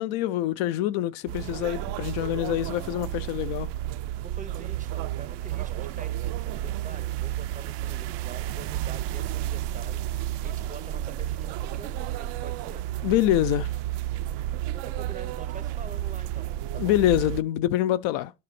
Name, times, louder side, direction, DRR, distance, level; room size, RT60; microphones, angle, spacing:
voice 1, 0.0-3.7 13.0-13.7 16.8-18.3, left 13 dB, 85° left, 0.7 m, -25 dB
sound 1, 1.3-17.4, right 13 dB, 70° right, 0.5 m, -32 dB
voice 2, 4.2-10.0 10.4-12.8 14.7-17.0, right 5 dB, 20° right, 0.5 m, -45 dB
11.0 x 3.6 x 6.8 m
cardioid pair, 135°, 44 cm